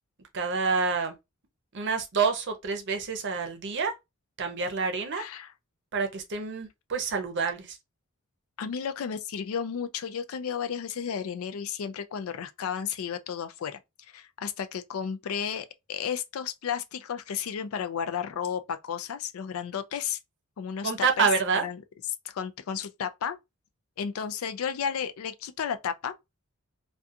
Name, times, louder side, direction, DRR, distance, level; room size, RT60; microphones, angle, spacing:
voice 1, 0.3-1.2 1.7-3.9 4.4-5.2 5.9-7.8 20.8-21.6, right 5 dB, 55° right, 0.6 m, -27 dB
voice 2, 5.1-5.5 8.6-13.8 14.1-20.2 20.6-21.3 21.5-21.8 22.2-23.4 24.0-26.1, left 7 dB, 65° left, 0.4 m, -33 dB
2.5 x 2.3 x 2.6 m
head